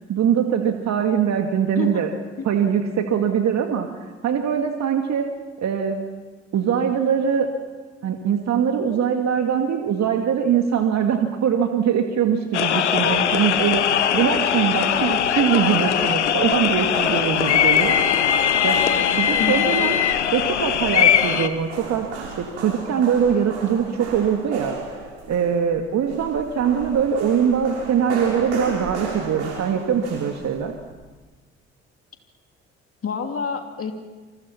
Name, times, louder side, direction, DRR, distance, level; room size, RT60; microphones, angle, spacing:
voice 1, 0.0-2.1 2.4-3.9 4.2-5.3 5.6-6.0 6.5-7.5 8.0-18.0 18.6-18.8 19.1-20.0 20.3-30.7, right 8 dB, 50° right, 4 dB, 2.1 m, -22 dB
sound 1, 12.5-21.5, left 9 dB, 90° left, 1.0 m, -20 dB
sound 2, 15.9-30.9, right 3 dB, 80° right, 6.5 m, -36 dB
voice 2, 19.4-19.9 33.0-33.9, left 5 dB, 40° left, 5 dB, 2.9 m, -28 dB
28.5 x 24.5 x 5.9 m, 1.3 s
hypercardioid pair, 50°, 34 cm